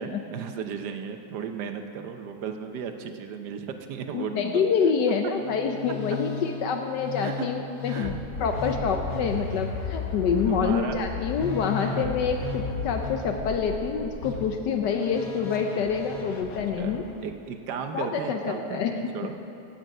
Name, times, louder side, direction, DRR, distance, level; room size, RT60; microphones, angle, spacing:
voice 1, 0.0-4.6 6.1-6.2 7.2-7.5 7.9-8.1 8.4-8.9 10.5-11.0 11.8-12.2 16.8-19.4, right 7 dB, 75° right, 7 dB, 1.4 m, -35 dB
voice 2, 4.1-17.0 17.9-18.9 19.2-19.4, left 6 dB, 75° left, 5 dB, 1.4 m, -27 dB
Musical instrument, 5.4-17.2, left 4 dB, 55° left, 1.5 m, -35 dB
15.0 x 8.9 x 5.4 m, 2.6 s
omnidirectional pair, 1.9 m